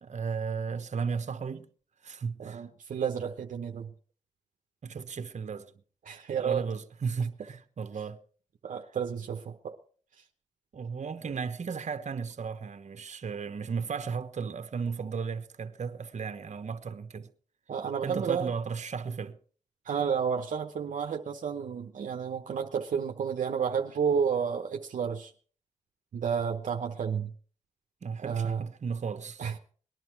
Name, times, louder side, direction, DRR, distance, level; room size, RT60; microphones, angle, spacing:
voice 1, 0.0-1.7 2.0-2.7 4.8-5.7 6.4-8.2 10.7-17.3 18.0-19.4 28.0-29.5, right 5 dB, 60° right, 1.2 m, -35 dB
voice 2, 2.4-3.9 6.1-6.7 8.6-9.8 11.2-11.3 17.7-18.5 19.8-25.3 26.1-27.3 28.2-28.6 29.4-29.6, right 7 dB, 80° right, 1.0 m, -31 dB
19.5 x 11.0 x 4.6 m
cardioid pair, 55°, 13 cm